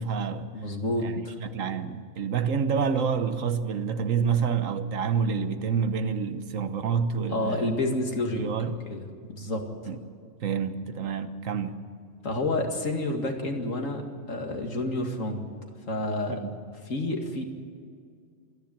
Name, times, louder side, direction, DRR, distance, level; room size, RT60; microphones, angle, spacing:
voice 1, 0.0-0.5 1.0-1.1 1.4-7.7 8.4-8.8 9.9-10.0 10.4-11.8 16.3-16.5, right 6 dB, 80° right, 1.4 m, -28 dB
voice 2, 0.5-1.3 7.3-8.4 8.9-9.7 12.2-15.4 15.9-16.4 16.8-17.4, left 2 dB, 80° left, 2.5 m, -29 dB
26.0 x 10.5 x 9.6 m
omnidirectional pair, 1.3 m